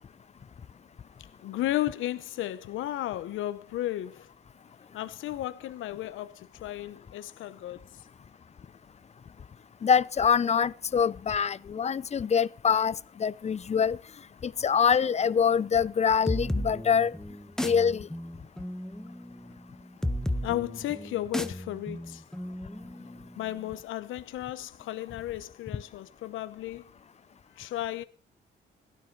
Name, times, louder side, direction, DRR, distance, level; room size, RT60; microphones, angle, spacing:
voice 1, 1.4-4.3 4.9-7.8 20.4-22.2 23.4-26.8 27.6-28.0, left 14 dB, 80° left, 0.9 m, -34 dB
voice 2, 9.8-14.0 14.4-17.1 17.6-18.1, left 7 dB, 35° left, 0.7 m, -25 dB
sound 1, 16.3-23.6, left 1 dB, 5° left, 1.4 m, -34 dB
17.0 x 12.5 x 4.7 m
cardioid pair, 90°, 20 cm